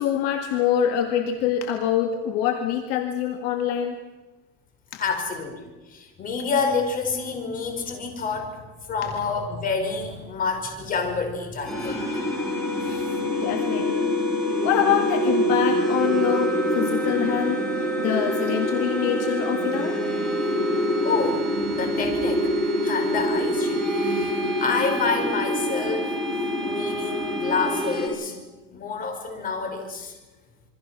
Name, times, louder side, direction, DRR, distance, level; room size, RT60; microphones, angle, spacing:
voice 1, 0.0-4.0 4.9-5.0 12.8-14.1 14.6-20.0, left 9 dB, 55° left, 5 dB, 2.0 m, -25 dB
voice 2, 5.0-8.6 8.9-12.2 12.8-13.0 21.0-21.4 21.7-22.5 22.8-26.1 26.6-28.4 28.7-30.1, left 4 dB, 30° left, 5 dB, 5.1 m, -28 dB
sound 1, 11.7-28.1, equal, ahead, 7.4 m, -25 dB
27.5 x 23.0 x 6.1 m, 1.2 s
supercardioid pair, 150°, 30 cm